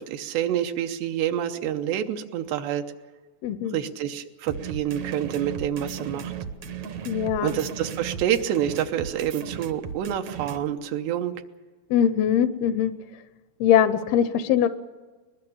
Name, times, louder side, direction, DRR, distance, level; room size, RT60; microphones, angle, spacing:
voice 1, 0.0-2.8 3.7-6.3 7.4-11.4, right 10 dB, 85° right, 5 dB, 3.0 m, -27 dB
voice 2, 3.4-3.8 7.1-7.5 11.9-12.9 13.6-14.7, left 9 dB, 75° left, 13 dB, 2.5 m, -21 dB
sound 1, 4.5-10.6, right 7 dB, 65° right, 1.8 m, -36 dB
22.5 x 20.5 x 7.1 m, 1.3 s
omnidirectional pair, 4.8 m